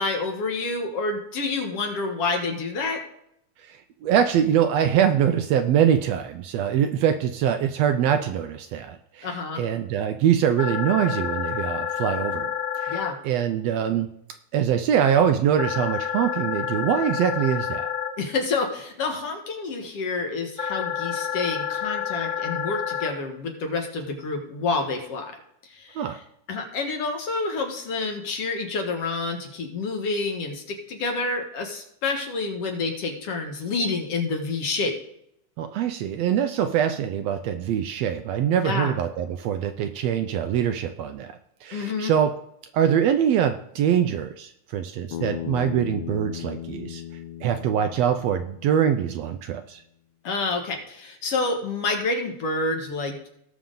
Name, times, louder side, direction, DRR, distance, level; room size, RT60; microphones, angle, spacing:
voice 1, 0.0-3.0 9.2-9.6 12.9-13.2 18.2-25.3 25.7-26.0 26.5-34.9 38.6-39.0 41.7-42.1 50.2-53.3, left 3 dB, 60° left, 3 dB, 2.1 m, -28 dB
voice 2, 3.6-12.5 12.8-14.1 14.5-17.9 26.0-26.2 35.6-42.4 42.7-47.0 47.4-49.8, right 9 dB, 75° right, 7 dB, 1.6 m, -23 dB
sound 1, 10.6-13.1 15.6-18.1 20.6-23.1, left 8 dB, 30° left, 0.6 m, -29 dB
Bass guitar, 45.1-49.4, left 12 dB, 80° left, 1.2 m, -36 dB
18.5 x 6.2 x 3.8 m, 0.73 s
omnidirectional pair, 3.4 m